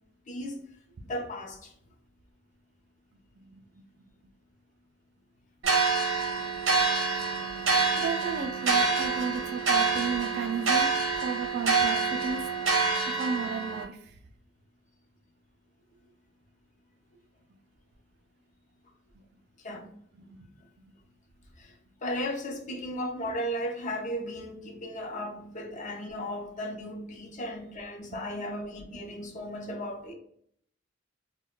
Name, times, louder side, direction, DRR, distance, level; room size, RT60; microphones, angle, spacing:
voice 1, 0.3-0.6 1.1-1.7 19.6-19.9 21.6-21.7 22.0-30.1, equal, 40° left, 0.6 m, -35 dB
sound 1, 5.6-13.8, right 4 dB, 80° right, 0.7 m, -27 dB
voice 2, 7.9-10.9 11.2-12.4 13.2-14.0 20.3-20.5 20.8-20.9, right 5 dB, 55° right, 0.4 m, -33 dB
2.2 x 2.2 x 3.7 m
head